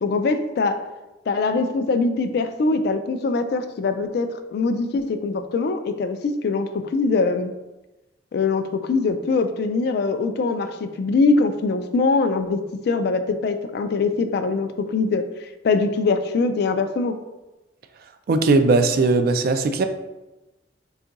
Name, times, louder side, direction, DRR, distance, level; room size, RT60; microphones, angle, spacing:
voice 1, 0.0-0.8 1.3-7.5 8.3-12.6 12.9-15.2 15.6-17.2, left 3 dB, 55° left, 8 dB, 0.3 m, -22 dB
voice 2, 18.3-19.8, right 3 dB, 50° right, 7 dB, 0.3 m, -18 dB
3.7 x 2.3 x 3.9 m, 1.0 s
head